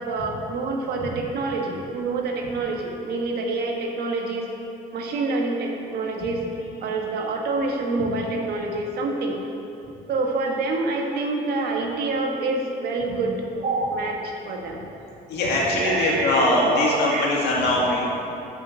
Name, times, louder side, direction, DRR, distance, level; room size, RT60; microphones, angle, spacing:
voice 1, 0.0-4.5 4.9-6.4 6.8-9.4 10.1-14.8 15.8-17.3 17.8-18.0, right 3 dB, 70° right, 1 dB, 1.3 m, -27 dB
voice 2, 15.3-18.0, left 2 dB, 80° left, -4 dB, 2.1 m, -22 dB
7.0 x 5.6 x 7.4 m, 2.9 s
cardioid pair, 110°, 17 cm